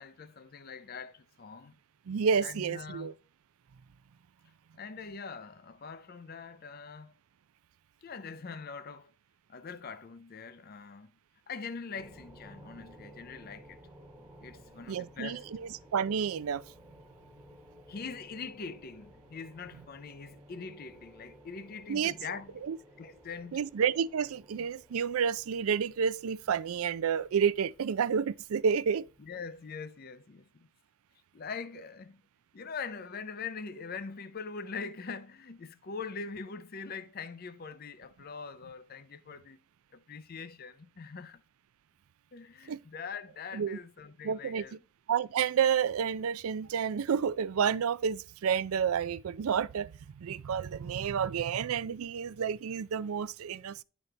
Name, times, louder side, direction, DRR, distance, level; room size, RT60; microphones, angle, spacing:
voice 1, 0.0-1.7 2.4-3.2 4.7-7.1 8.0-9.1 9.5-11.1 11.5-13.8 14.4-15.5 17.9-22.6 23.0-23.6 29.2-30.7 31.3-32.2 32.5-39.6 39.9-41.4 42.3-44.8, left 5 dB, 45° left, 0.5 m, -43 dB
voice 2, 2.1-3.1 14.9-15.6 15.9-16.6 21.9-22.1 22.7-22.8 23.5-29.0 42.7-42.8 43.5-43.8 44.2-44.6 45.1-49.9 50.2-53.8, right 7 dB, 80° right, 0.4 m, -30 dB
sound 1, 12.0-29.4, equal, 5° right, 1.1 m, -56 dB
10.5 x 4.1 x 3.3 m
head